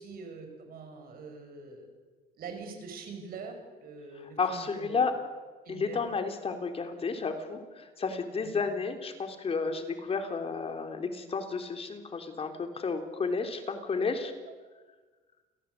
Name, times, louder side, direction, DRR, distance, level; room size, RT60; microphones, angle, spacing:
voice 1, 0.0-1.9 2.4-5.1 5.6-6.1 8.4-8.6, right 4 dB, 60° right, 5 dB, 6.8 m, -44 dB
voice 2, 4.4-5.1 5.7-14.3, left 4 dB, 35° left, 6 dB, 3.5 m, -32 dB
29.5 x 17.0 x 8.5 m, 1.4 s
cardioid pair, 110°, 17 cm